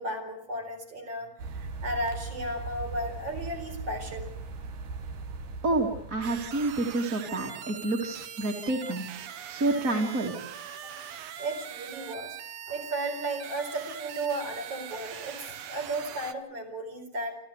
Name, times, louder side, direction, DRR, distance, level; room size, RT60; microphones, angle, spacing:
voice 1, 0.0-4.3 10.8-10.9 11.4-12.4 12.7-17.4, right 1 dB, 55° right, 2 dB, 5.6 m, -34 dB
sound 1, 1.4-7.0, right 4 dB, 85° right, 2.9 m, -39 dB
voice 2, 5.6-9.0 9.5-10.4, right 2 dB, 30° right, 2 dB, 2.8 m, -28 dB
sound 2, 6.2-16.3, right 9 dB, 70° right, 2.2 m, -42 dB
28.5 x 14.0 x 8.2 m, 0.70 s
omnidirectional pair, 3.3 m